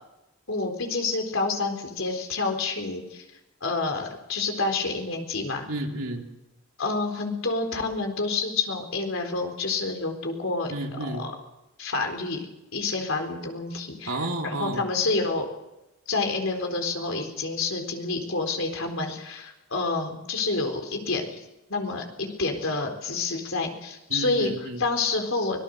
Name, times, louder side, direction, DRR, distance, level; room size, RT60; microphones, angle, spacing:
voice 1, 0.5-3.2 3.6-5.7 6.8-10.7 11.1-11.3 11.8-12.5 12.7-15.5 16.1-21.4 21.7-25.6, left 3 dB, 65° left, 4 dB, 4.0 m, -28 dB
voice 2, 5.7-6.3 10.7-11.3 14.1-14.8 24.1-24.8, right 2 dB, 85° right, 2 dB, 3.2 m, -31 dB
24.5 x 19.0 x 6.6 m, 0.96 s
head